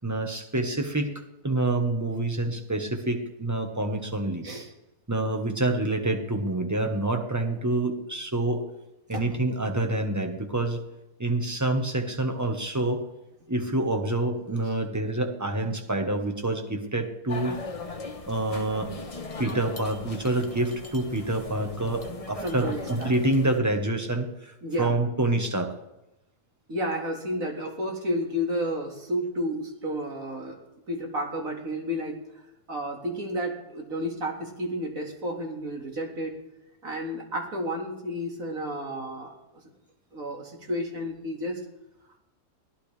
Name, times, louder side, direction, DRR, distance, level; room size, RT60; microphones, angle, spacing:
voice 1, 0.0-1.1 1.4-4.5 5.1-8.6 9.1-10.8 11.2-13.0 13.5-17.6 18.3-18.9 19.4-25.7, right 2 dB, 10° right, 4 dB, 1.2 m, -27 dB
sound 1, 17.3-23.6, left 3 dB, 25° left, 1.1 m, -39 dB
voice 2, 22.4-23.1 24.6-24.9 26.7-30.6 30.9-32.2 32.7-36.3 36.8-39.3 40.1-41.6, equal, 55° right, 1 dB, 2.6 m, -31 dB
23.5 x 16.0 x 3.4 m, 0.94 s
omnidirectional pair, 1.7 m